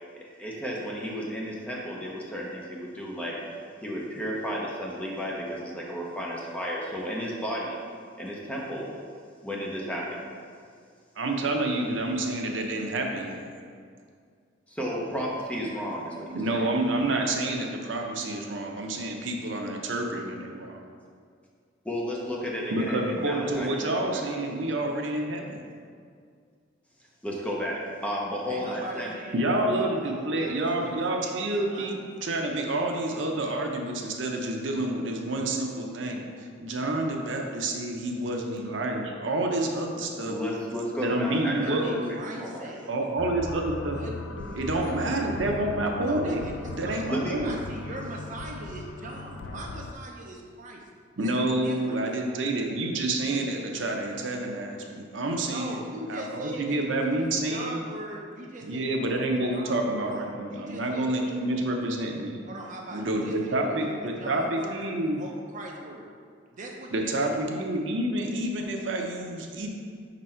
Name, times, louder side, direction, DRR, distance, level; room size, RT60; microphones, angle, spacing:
voice 1, 0.2-3.4 3.8-7.8 8.2-8.9 9.4-10.2 14.7-16.4 21.8-24.2 27.2-29.1 40.3-42.7 44.4-44.6 47.1-47.4, equal, 5° left, -4 dB, 0.8 m, -33 dB
voice 2, 11.2-13.5 16.3-20.8 22.7-25.6 29.3-40.4 41.0-42.2 42.9-44.2 44.5-46.4 46.8-47.6 51.2-55.8 56.1-57.8 58.6-62.4 62.9-65.2 66.9-69.7, right 1 dB, 80° right, 1 dB, 0.7 m, -28 dB
voice 3, 28.5-31.9 41.3-43.0 43.9-45.0 46.1-50.9 51.2-52.0 55.5-61.6 62.5-64.9 65.2-66.1 66.5-67.4, right 1 dB, 40° right, 0 dB, 0.6 m, -41 dB
sound 1, 43.2-49.9, left 3 dB, 80° left, 0.4 m, -38 dB
5.5 x 4.0 x 4.3 m, 2.1 s
head